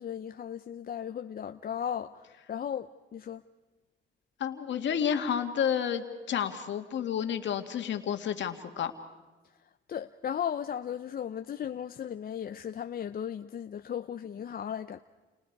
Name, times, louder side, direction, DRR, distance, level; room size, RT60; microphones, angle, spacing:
voice 1, 0.0-3.4 9.9-15.0, left 9 dB, 50° left, 0.7 m, -36 dB
voice 2, 4.4-8.9, left 8 dB, 65° left, 2.1 m, -30 dB
29.5 x 29.5 x 4.8 m
cardioid pair, 90°, 20 cm